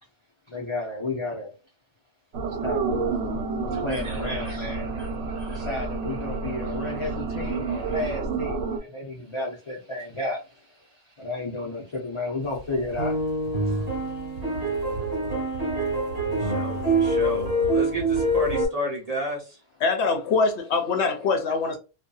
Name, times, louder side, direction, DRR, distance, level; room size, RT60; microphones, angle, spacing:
voice 1, 0.5-1.5 2.6-2.9 3.7-13.2 13.6-13.9 14.4-15.0, left 2 dB, 40° left, 0.4 m, -33 dB
sound 1, 2.3-8.8, right 4 dB, 70° right, 1.0 m, -29 dB
sound 2, 12.9-18.7, right 1 dB, 55° right, 1.3 m, -25 dB
voice 2, 16.3-19.6, right 1 dB, 40° right, 0.7 m, -32 dB
voice 3, 19.8-21.8, left 4 dB, 70° left, 0.8 m, -23 dB
2.6 x 2.3 x 2.2 m
omnidirectional pair, 1.3 m